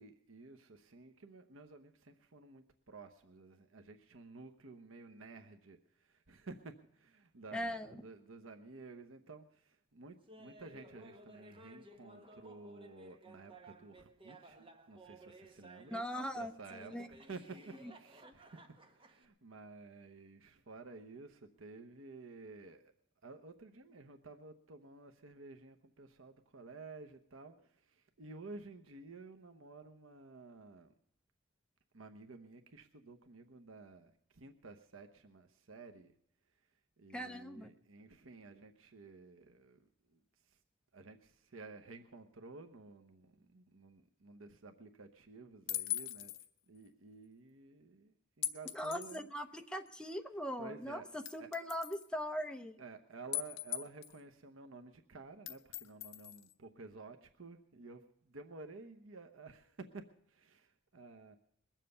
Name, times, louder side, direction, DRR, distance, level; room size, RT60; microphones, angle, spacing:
voice 1, 0.0-16.0 16.3-22.8 23.2-30.9 31.9-36.1 36.5-36.7 37.0-40.6 40.9-46.3 46.7-49.3 49.6-49.9 50.6-51.5 52.8-61.4, right 3 dB, 85° right, 7 dB, 0.9 m, -53 dB
voice 2, 7.5-8.0 15.9-17.1 18.2-18.3 37.1-37.7 48.7-52.8, equal, 5° left, 5 dB, 0.8 m, -40 dB
Laughter, 10.3-16.2 16.7-19.3, right 1 dB, 25° right, 1.2 m, -57 dB
sound 1, 45.7-46.5 48.4-49.2 49.9-50.0 51.3-52.0 53.3-54.2 55.5-56.5, left 13 dB, 65° left, 0.9 m, -40 dB
21.0 x 7.5 x 6.8 m, 0.70 s
head